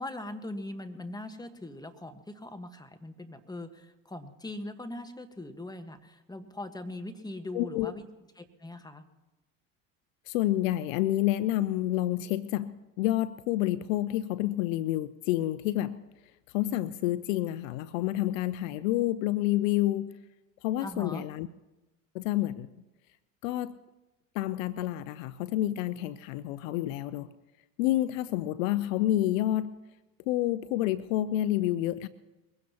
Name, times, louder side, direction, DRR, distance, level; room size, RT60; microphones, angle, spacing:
voice 1, 0.0-8.0 8.4-9.0 20.8-21.2, left 1 dB, 10° left, 8 dB, 1.4 m, -41 dB
voice 2, 7.5-7.9 10.3-16.0 16.5-20.1 20.6-21.5 22.1-22.7 23.4-23.7 24.3-27.3 27.8-29.7 30.3-32.1, left 14 dB, 80° left, 15 dB, 0.6 m, -29 dB
22.0 x 16.0 x 2.9 m, 1.0 s
hypercardioid pair, 70°, 40 cm